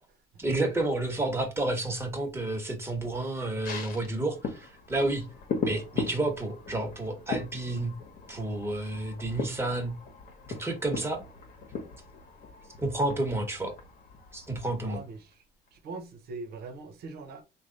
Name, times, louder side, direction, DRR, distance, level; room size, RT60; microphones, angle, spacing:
voice 1, 0.4-5.3 5.6-7.9 8.3-9.9 10.6-11.2 12.8-13.7 14.3-15.0, right 2 dB, 15° right, 1.2 m, -30 dB
sound 1, 3.6-15.3 15.7-15.8, left 5 dB, 60° left, 1.0 m, -39 dB
voice 2, 14.8-15.4 15.7-17.4, right 3 dB, 70° right, 1.0 m, -41 dB
3.3 x 2.5 x 3.8 m
cardioid pair, 110°, 17 cm